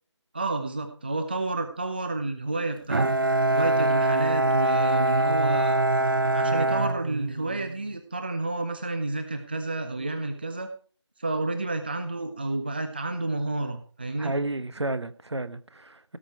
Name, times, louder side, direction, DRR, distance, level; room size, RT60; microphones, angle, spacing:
voice 1, 0.3-3.1 3.5-5.8 6.3-10.7 11.2-14.3, right 2 dB, 20° right, 7 dB, 0.6 m, -30 dB
Bowed string instrument, 2.9-7.8, right 1 dB, 45° right, 0.9 m, -23 dB
voice 2, 14.2-16.2, right 2 dB, 65° right, 13 dB, 1.2 m, -32 dB
17.0 x 6.5 x 4.6 m, 0.42 s
figure-of-eight pair, 170°, 16 cm